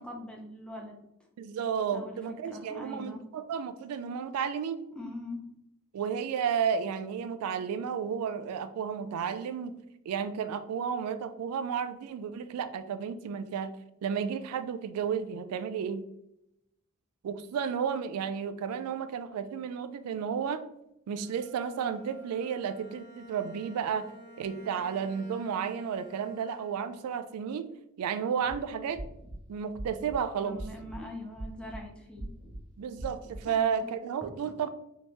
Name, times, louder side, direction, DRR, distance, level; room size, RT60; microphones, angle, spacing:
voice 1, 0.0-1.3 1.9-3.3 4.9-5.5 30.4-32.3 33.5-33.9, left 1 dB, 5° left, 0 dB, 0.5 m, -42 dB
voice 2, 1.4-4.8 5.9-9.8 10.1-13.7 14.0-16.0 17.2-20.6 21.1-24.1 24.4-27.7 28.0-29.0 29.5-30.6 32.8-34.7, right 7 dB, 90° right, 11 dB, 0.3 m, -32 dB
Bowed string instrument, 21.2-27.2, equal, 65° right, 0.8 m, -51 dB
sound 1, 28.3-28.6 28.9-29.4 29.7-30.2 30.5-31.0 31.4-31.8 32.2-32.6 33.0-33.4, right 1 dB, 25° left, 1.2 m, -41 dB
3.4 x 2.8 x 2.9 m, 0.81 s
head